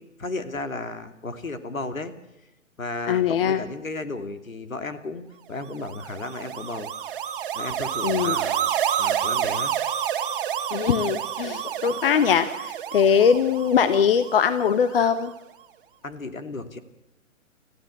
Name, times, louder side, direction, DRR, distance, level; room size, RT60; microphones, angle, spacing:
voice 1, 0.0-2.1 2.8-7.2 7.5-9.7 16.0-16.8, left 3 dB, 70° left, 10 dB, 2.8 m, -34 dB
voice 2, 3.1-3.6 8.0-8.4 10.7-15.3, left 7 dB, 40° left, 12 dB, 1.2 m, -21 dB
sound 1, 5.7-15.0, right 9 dB, 40° right, 1.8 m, -29 dB
29.0 x 15.0 x 8.0 m, 0.92 s
figure-of-eight pair, 130°, 41 cm